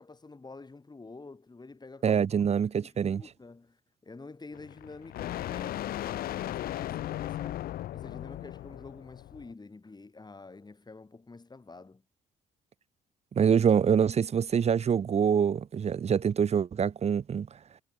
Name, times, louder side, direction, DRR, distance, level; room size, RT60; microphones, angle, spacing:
voice 1, 0.0-2.2 2.5-12.0, left 3 dB, 25° left, 6.6 m, -48 dB
voice 2, 2.0-3.2 13.3-17.5, right 7 dB, 40° right, 0.9 m, -25 dB
sound 1, 4.5-9.5, left 13 dB, 65° left, 2.3 m, -37 dB
hypercardioid pair, 45°, 17 cm